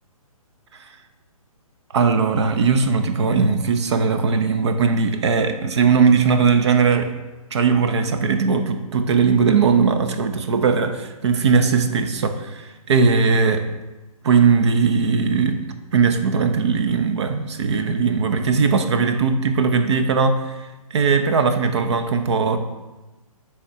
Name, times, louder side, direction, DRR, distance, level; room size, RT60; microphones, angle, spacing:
voice 1, 1.9-7.1 7.5-13.6 14.2-15.7 15.9-22.6, right 5 dB, 50° right, 8 dB, 0.7 m, -19 dB
7.2 x 3.6 x 5.5 m, 1.1 s
hypercardioid pair, 155°, 19 cm